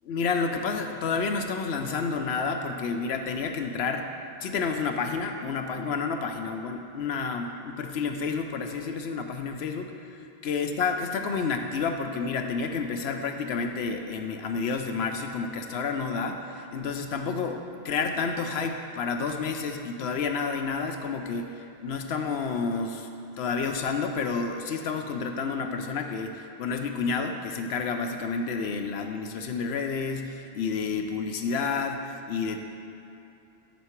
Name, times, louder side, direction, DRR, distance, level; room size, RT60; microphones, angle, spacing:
voice 1, 0.1-4.1 4.4-23.1 23.4-32.6, left 5 dB, 70° left, 5 dB, 0.8 m, -30 dB
10.0 x 4.7 x 4.4 m, 2.8 s
omnidirectional pair, 1.2 m